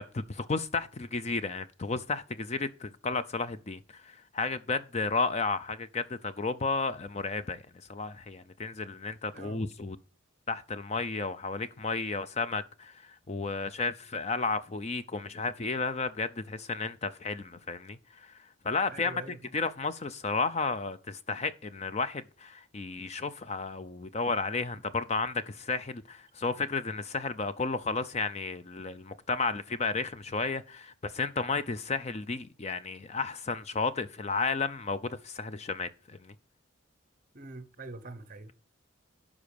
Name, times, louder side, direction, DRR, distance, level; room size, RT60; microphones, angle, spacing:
voice 1, 0.0-7.6 7.9-10.0 10.5-18.3 18.6-36.3, left 4 dB, 30° left, 0.5 m, -33 dB
voice 2, 9.3-9.7 18.9-19.5 37.3-38.5, right 2 dB, 40° right, 1.0 m, -45 dB
11.5 x 5.0 x 5.2 m
head